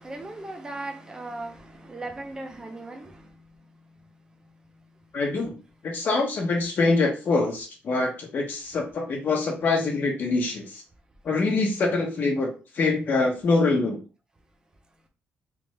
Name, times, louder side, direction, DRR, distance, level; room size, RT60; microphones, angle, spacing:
voice 1, 0.0-1.5 1.9-3.0, right 2 dB, 20° right, 0.6 m, -36 dB
voice 2, 5.1-5.5 5.8-10.6 11.2-14.0, left 3 dB, 50° left, 1.1 m, -24 dB
3.4 x 2.5 x 3.2 m
wide cardioid pair, 150°, 4 cm